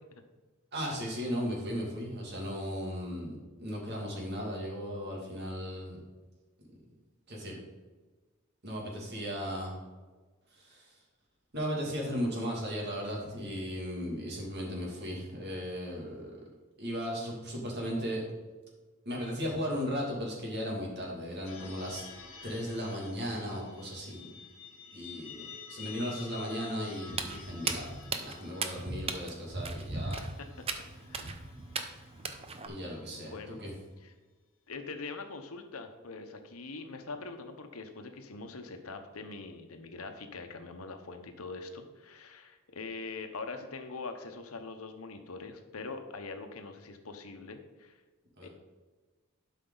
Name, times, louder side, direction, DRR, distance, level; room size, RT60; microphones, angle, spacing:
voice 1, 0.7-6.0 7.3-7.6 8.6-9.8 10.5-10.9 11.5-16.3 16.8-18.2 19.1-22.0 22.4-24.3 24.9-27.9 28.1-30.2 32.7-33.7 48.4-48.5, equal, 50° right, -2 dB, 2.6 m, -36 dB
sound 1, 21.5-34.0, left 6 dB, 70° left, 1.7 m, -51 dB
Walk footsteps, 27.1-32.7, right 4 dB, 30° right, 0.7 m, -37 dB
voice 2, 30.0-30.5 31.1-31.4 33.1-33.6 34.0-34.1 34.7-47.9 48.4-48.5, left 3 dB, 85° left, 6 dB, 1.0 m, -43 dB
11.5 x 5.5 x 4.0 m, 1.3 s
head